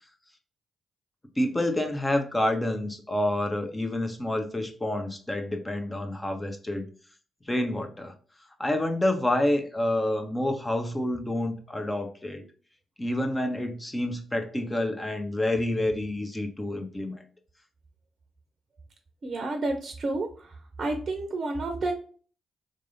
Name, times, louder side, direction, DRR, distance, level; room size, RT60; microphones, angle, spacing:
voice 1, 1.4-6.8 7.5-8.1 8.6-12.4 13.0-17.2, left 1 dB, 20° left, 5 dB, 1.0 m, -28 dB
voice 2, 19.2-20.5 20.8-21.9, right 2 dB, 50° right, 5 dB, 0.7 m, -30 dB
3.9 x 3.3 x 2.7 m, 0.42 s
hypercardioid pair, 40°, 0 cm